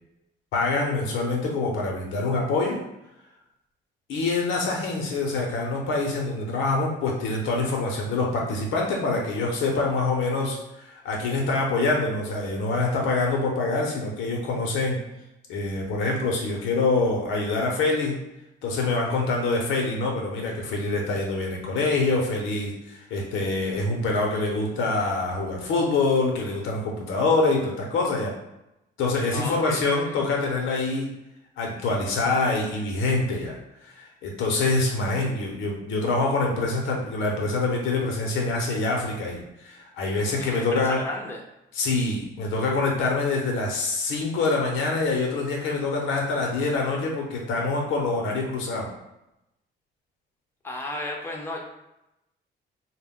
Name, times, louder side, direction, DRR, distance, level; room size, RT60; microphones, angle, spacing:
voice 1, 0.5-2.8 4.1-15.0 15.5-18.2 18.6-28.3 29.0-31.2 31.6-33.6 33.9-41.0 41.7-48.9, left 3 dB, 90° left, 0 dB, 0.7 m, -25 dB
voice 2, 29.3-29.9 40.4-41.4 50.6-51.6, left 1 dB, 10° left, 0 dB, 0.5 m, -33 dB
2.1 x 2.0 x 3.6 m, 0.90 s
cardioid pair, 90°, 20 cm